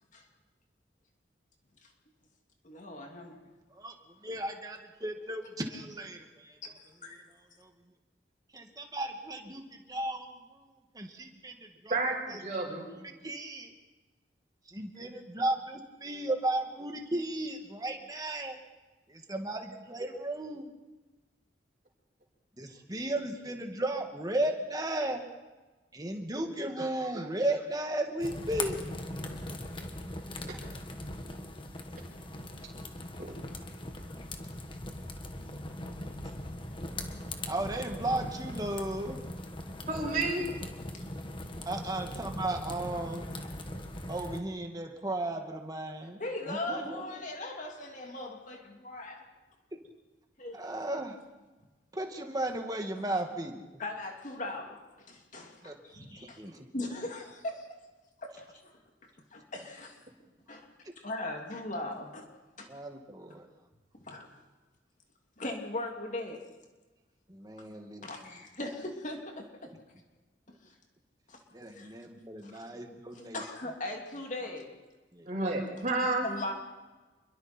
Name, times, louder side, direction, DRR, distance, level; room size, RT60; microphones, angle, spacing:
voice 1, 2.6-3.4 6.8-7.2 40.9-41.1 45.9-49.3 50.4-50.6 52.9-53.1 53.8-56.4 56.7-57.7 58.2-58.8 59.3-60.0 60.5-60.7 61.0-62.3 62.6-62.7 64.0-64.3 65.4-66.4 68.0-69.5 70.6-70.7 71.3-71.4 71.7-71.9 72.4-72.5 73.1-74.7 76.2-76.5, left 2 dB, 45° left, 1 dB, 2.9 m, -39 dB
voice 2, 4.2-6.6 7.6-7.7 8.5-10.3 10.9-11.9 12.3-12.4 13.2-13.7 14.7-18.6 19.1-20.7 22.6-25.2 25.9-28.8 37.5-39.2 41.6-43.2 44.1-46.2 46.5-47.0 50.5-51.2 51.9-53.7 55.6-56.7 62.7-63.4 67.3-68.1 71.5-73.4 75.1-75.3, right 1 dB, 20° right, 3 dB, 2.2 m, -35 dB
voice 3, 11.9-12.9 39.9-40.5 75.3-76.3, right 2 dB, 40° right, -3 dB, 5.8 m, -30 dB
sound 1, 28.2-44.4, left 1 dB, 30° left, 1.7 m, -40 dB
27.5 x 23.0 x 4.6 m, 1.2 s
head